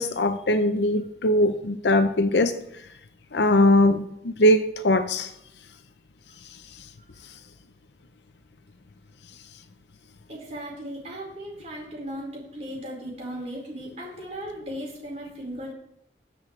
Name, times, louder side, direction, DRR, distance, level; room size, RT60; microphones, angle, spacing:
voice 1, 0.0-2.5 3.3-5.3, left 1 dB, 75° left, 9 dB, 0.7 m, -21 dB
voice 2, 10.3-15.7, equal, 40° right, -2 dB, 4.6 m, -37 dB
22.0 x 7.5 x 3.3 m, 0.76 s
head